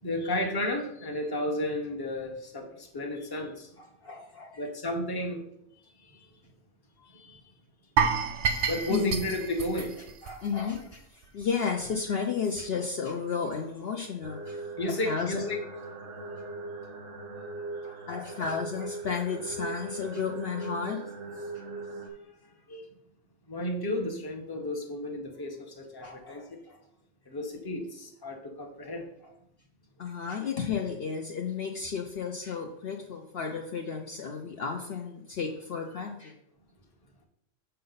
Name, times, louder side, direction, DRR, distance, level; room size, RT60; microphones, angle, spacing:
voice 1, 0.0-3.7 4.6-5.4 6.0-6.3 7.0-7.5 8.6-9.9 14.8-15.6 17.3-17.4 22.2-22.9 23.5-26.6 27.3-29.1, left 1 dB, 20° left, 2 dB, 0.9 m, -33 dB
voice 2, 4.0-4.6 8.9-9.2 10.2-14.7 15.1-15.4 17.8-21.0 21.3-21.4 26.0-26.8 30.0-36.3, left 6 dB, 60° left, 2 dB, 0.8 m, -33 dB
sound 1, 8.0-11.0 11.2-11.4 11.9-12.0, right 6 dB, 70° right, 0.9 m, -29 dB
sound 2, 14.2-22.1, right 3 dB, 85° right, 1.4 m, -40 dB
6.7 x 5.3 x 4.0 m, 0.76 s
omnidirectional pair, 1.3 m